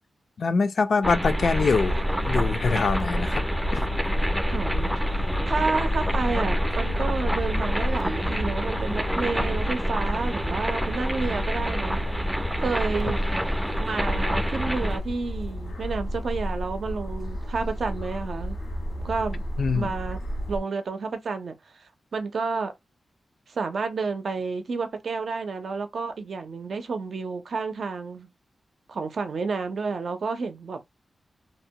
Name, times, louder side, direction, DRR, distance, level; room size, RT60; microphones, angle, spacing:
voice 1, 0.4-3.4 3.7-3.8 19.6-19.9, left 4 dB, 65° left, 0.4 m, -24 dB
sound 1, 1.0-15.0, equal, 5° right, 0.4 m, -28 dB
sound 2, 1.2-20.6, equal, 85° left, 1.3 m, -31 dB
voice 2, 4.5-12.0 12.6-13.2 13.8-18.6 19.0-19.4 19.7-20.2 20.5-21.8 22.1-22.7 23.5-28.3 28.9-30.9, right 4 dB, 70° right, 0.5 m, -30 dB
2.8 x 2.2 x 2.7 m
wide cardioid pair, 95°, 0 cm